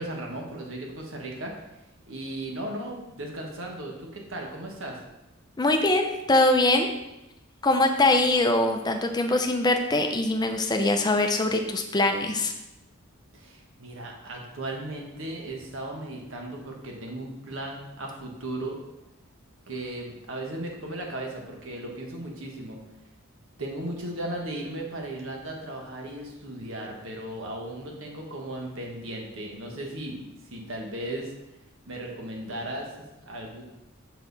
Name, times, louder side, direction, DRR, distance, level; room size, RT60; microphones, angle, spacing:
voice 1, 0.0-1.5 2.1-5.0 13.3-18.8 19.7-22.8 23.6-31.3 31.9-32.9 33.2-33.6, right 1 dB, 65° right, 0 dB, 1.4 m, -36 dB
voice 2, 5.6-6.9 7.6-12.5, left 2 dB, 20° left, 4 dB, 0.6 m, -22 dB
6.6 x 4.7 x 4.0 m, 0.93 s
head